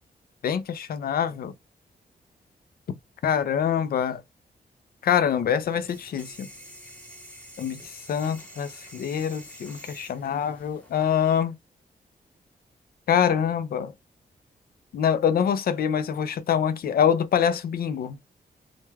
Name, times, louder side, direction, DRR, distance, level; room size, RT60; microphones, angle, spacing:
voice 1, 0.4-1.5 3.2-4.2 5.0-6.5 7.6-7.8 8.1-11.5 13.1-13.9 14.9-18.2, left 8 dB, 65° left, 0.4 m, -25 dB
sound 1, 5.5-11.4, equal, 10° left, 0.8 m, -47 dB
2.2 x 2.2 x 3.1 m
wide cardioid pair, 165°, 17 cm